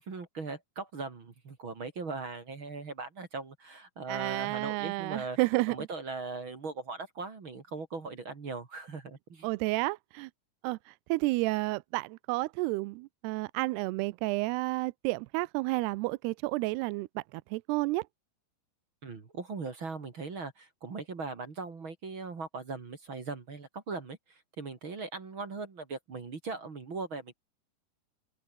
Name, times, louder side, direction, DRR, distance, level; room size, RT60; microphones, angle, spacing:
voice 1, 0.0-5.4 5.7-9.5 19.0-27.3, right 4 dB, 35° right, 2.8 m, -39 dB
voice 2, 4.1-5.8 9.4-10.3 10.6-10.8 11.1-17.1 17.5-18.0, right 22 dB, 80° right, 2.5 m, -31 dB
open air
omnidirectional pair, 4.9 m